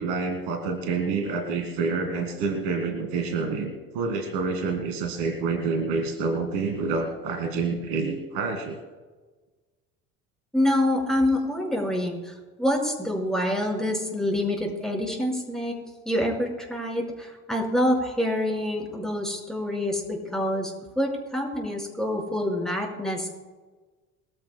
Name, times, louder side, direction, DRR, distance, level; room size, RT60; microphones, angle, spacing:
voice 1, 0.0-8.8, right 4 dB, 60° right, 6 dB, 2.2 m, -28 dB
voice 2, 10.5-15.7 16.1-23.3, left 1 dB, ahead, 0 dB, 5.3 m, -26 dB
22.0 x 15.0 x 2.3 m, 1.3 s
figure-of-eight pair, 65°, 44 cm